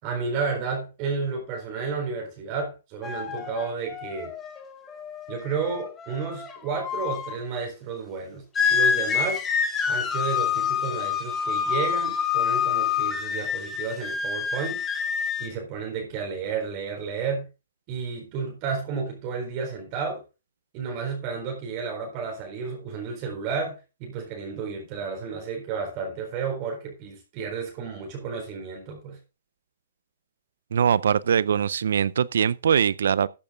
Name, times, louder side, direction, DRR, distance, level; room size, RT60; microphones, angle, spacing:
voice 1, 0.0-4.3 5.3-8.4 8.7-9.4 9.9-14.8 15.4-17.5 17.9-20.2 20.7-29.2, right 5 dB, 35° right, 4.2 m, -32 dB
sound 1, 3.0-7.4 8.6-15.5, left 7 dB, 15° left, 1.7 m, -27 dB
voice 2, 30.7-33.3, right 8 dB, 75° right, 0.6 m, -22 dB
14.0 x 7.8 x 3.8 m
hypercardioid pair, 145°, 0 cm